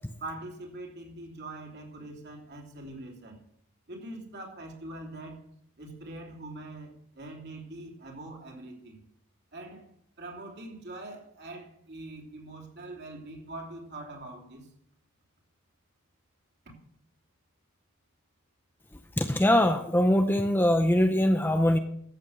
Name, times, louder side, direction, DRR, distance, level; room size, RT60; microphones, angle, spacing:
voice 1, 0.2-3.4 3.9-5.4 5.8-9.0 9.5-9.9 10.2-14.7 16.6-16.7, right 2 dB, 50° right, 1 dB, 3.2 m, -43 dB
voice 2, 19.2-21.8, left 1 dB, 10° left, 7 dB, 0.6 m, -22 dB
14.0 x 8.0 x 6.5 m, 0.72 s
head